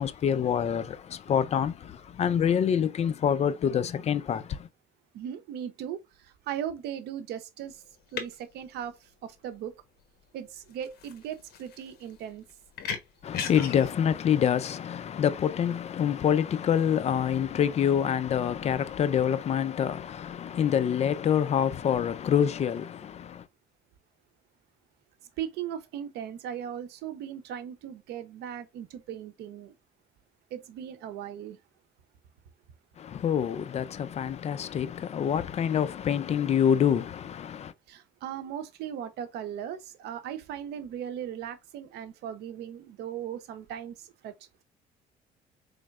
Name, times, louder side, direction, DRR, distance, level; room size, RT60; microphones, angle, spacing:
voice 1, 0.0-4.7 13.2-23.5 33.0-37.7, left 8 dB, 40° left, 0.4 m, -26 dB
voice 2, 5.1-7.8 8.1-9.7 10.3-12.4 25.4-29.7 30.5-31.6 37.9-44.3, right 9 dB, 80° right, 0.7 m, -38 dB
sound 1, 7.6-16.1, left 7 dB, 70° left, 1.0 m, -40 dB
4.2 x 3.3 x 2.4 m
cardioid pair, 110°, 17 cm